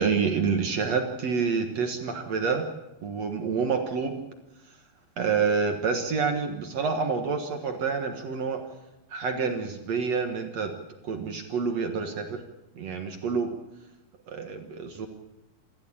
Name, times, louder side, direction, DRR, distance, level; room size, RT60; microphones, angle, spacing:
voice 1, 0.0-2.7 3.0-4.2 5.2-8.6 9.1-10.7 11.0-12.4 12.8-13.5 14.3-15.1, right 5 dB, 55° right, 5 dB, 2.0 m, -28 dB
27.5 x 13.5 x 8.7 m, 1.0 s
omnidirectional pair, 4.6 m